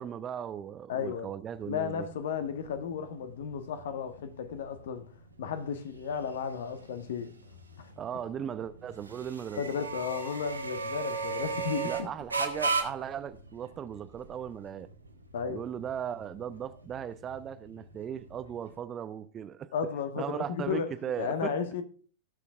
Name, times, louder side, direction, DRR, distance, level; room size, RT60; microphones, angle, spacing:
voice 1, 0.0-2.1 8.0-9.6 11.8-14.9 15.5-19.7 20.2-21.5, right 9 dB, 25° right, 0.8 m, -37 dB
voice 2, 0.9-1.3 1.6-5.1 5.4-7.3 7.8-7.9 9.5-11.9 15.3-15.6 19.7-20.9 21.2-21.8, left 6 dB, 60° left, 1.5 m, -34 dB
sound 1, 1.5-18.7, right 4 dB, 85° right, 2.0 m, -38 dB
17.5 x 6.7 x 3.5 m
figure-of-eight pair, 90°, 0 cm